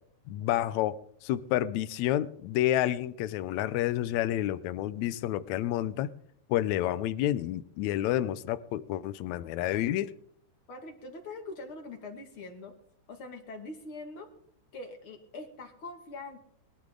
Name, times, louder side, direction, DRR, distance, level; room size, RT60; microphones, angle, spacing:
voice 1, 0.3-6.1 6.5-10.2, left 13 dB, 75° left, 1.9 m, -29 dB
voice 2, 10.7-12.7 13.1-14.3 14.7-16.4, left 2 dB, 45° left, 2.8 m, -43 dB
21.5 x 12.0 x 3.8 m
omnidirectional pair, 3.5 m